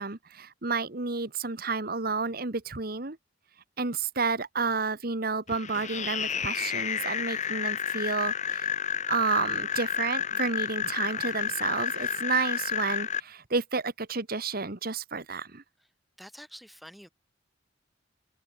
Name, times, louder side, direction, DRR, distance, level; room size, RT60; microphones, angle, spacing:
voice 1, 0.0-3.2 3.8-8.7 9.1-15.6, right 4 dB, 50° right, 1.5 m, -31 dB
sound 1, 5.5-13.2, left 8 dB, 40° left, 1.6 m, -31 dB
voice 2, 11.0-11.5 16.2-17.1, equal, ahead, 2.0 m, -49 dB
head